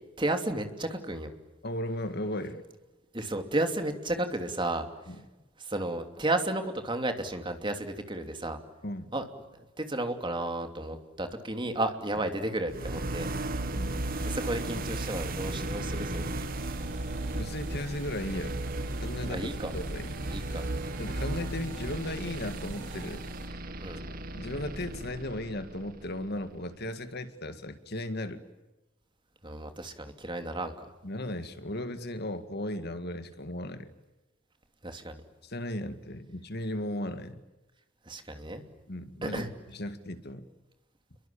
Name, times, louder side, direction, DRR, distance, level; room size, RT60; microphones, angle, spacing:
voice 1, 0.2-1.3 3.1-5.1 5.6-8.6 9.1-9.3 9.5-13.3 14.2-16.5 19.3-19.7 20.3-20.6 23.8-24.0 29.4-30.7 34.8-35.2 38.1-38.6 39.2-39.5, right 1 dB, 25° right, 6 dB, 2.8 m, -33 dB
voice 2, 1.6-2.6 5.1-5.2 8.8-9.1 13.7-14.0 17.3-18.6 19.0-20.1 21.0-23.6 24.3-28.4 31.0-33.9 35.4-37.4 38.9-40.5, left 1 dB, 50° left, 10 dB, 2.0 m, -36 dB
sound 1, 12.7-26.6, right 1 dB, 45° right, 1.9 m, -35 dB
sound 2, 13.3-23.6, right 3 dB, 65° right, 4.6 m, -49 dB
30.0 x 23.5 x 8.6 m, 1.1 s
head